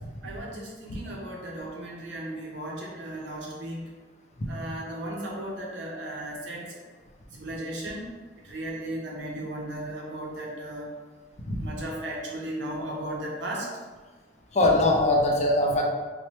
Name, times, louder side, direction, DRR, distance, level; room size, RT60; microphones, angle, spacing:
voice 1, 0.2-3.8 4.5-6.7 7.4-8.0 8.4-10.9 11.6-13.7, right 1 dB, 80° right, -2 dB, 0.6 m, -35 dB
voice 2, 14.5-15.8, left 1 dB, 40° left, 0 dB, 0.4 m, -22 dB
3.0 x 2.1 x 3.0 m, 1.3 s
head